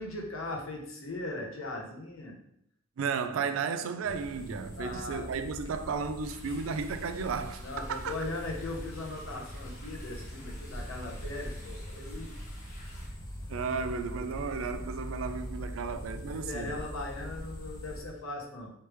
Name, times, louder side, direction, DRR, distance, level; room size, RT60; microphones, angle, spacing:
voice 1, 0.0-2.3 4.8-5.3 7.6-12.4 15.9-18.7, left 2 dB, 80° left, 0.9 m, -39 dB
voice 2, 3.0-8.1 13.5-16.7, right 5 dB, 80° right, 0.4 m, -34 dB
sound 1, 4.0-18.0, equal, 20° left, 0.5 m, -42 dB
sound 2, 6.2-13.1, left 1 dB, 45° left, 1.2 m, -52 dB
3.2 x 3.2 x 3.0 m
head